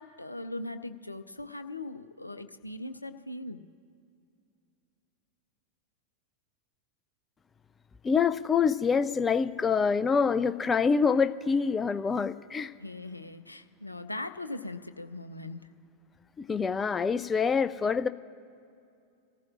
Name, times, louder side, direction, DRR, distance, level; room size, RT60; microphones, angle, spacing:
voice 1, 0.0-3.6 12.8-15.7, left 2 dB, 85° left, 10 dB, 0.5 m, -40 dB
voice 2, 8.0-12.7 16.4-18.1, left 5 dB, 20° left, 13 dB, 0.4 m, -26 dB
27.5 x 15.0 x 2.5 m, 2.5 s
figure-of-eight pair, 90°, 0 cm